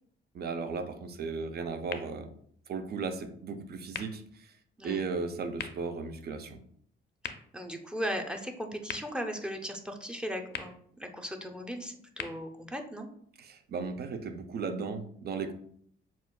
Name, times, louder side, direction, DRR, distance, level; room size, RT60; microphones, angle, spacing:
voice 1, 0.3-2.3 2.7-4.5 4.8-6.6 13.4-15.5, right 4 dB, 55° right, 7 dB, 0.6 m, -36 dB
sound 1, 1.8-13.8, left 8 dB, 60° left, 0.5 m, -47 dB
voice 2, 7.5-13.1, equal, 5° right, 4 dB, 0.6 m, -37 dB
7.1 x 2.4 x 2.3 m, 0.64 s
cardioid pair, 90°, 20 cm